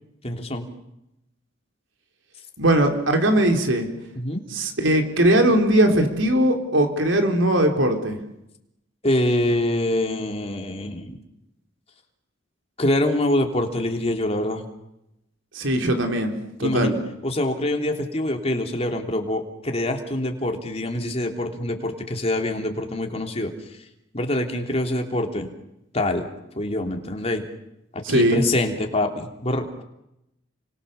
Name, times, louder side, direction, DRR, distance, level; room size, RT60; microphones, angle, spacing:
voice 1, 0.2-0.7 4.1-4.4 9.0-11.2 12.8-14.6 16.6-16.9 17.2-23.5 24.1-25.5 25.9-26.3 26.6-27.5 27.9-29.7, left 1 dB, 35° left, 3 dB, 3.3 m, -25 dB
voice 2, 2.6-3.9 4.5-8.2 15.5-16.3 16.6-17.0 28.0-28.4, right 1 dB, 80° right, 4 dB, 4.0 m, -20 dB
30.0 x 25.0 x 6.9 m, 0.85 s
head